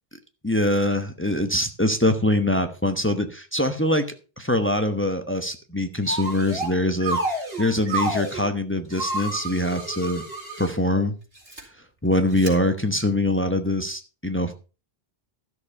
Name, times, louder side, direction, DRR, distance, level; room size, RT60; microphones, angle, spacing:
voice 1, 0.4-10.2 10.6-11.1 12.0-14.5, left 1 dB, 10° left, 7 dB, 1.0 m, -23 dB
sound 1, 6.0-6.7 7.0-8.4 8.9-10.7 11.4-11.6 12.4-12.5, right 1 dB, 75° right, 4.4 m, -29 dB
13.0 x 6.9 x 5.4 m, 0.33 s
omnidirectional pair, 1.0 m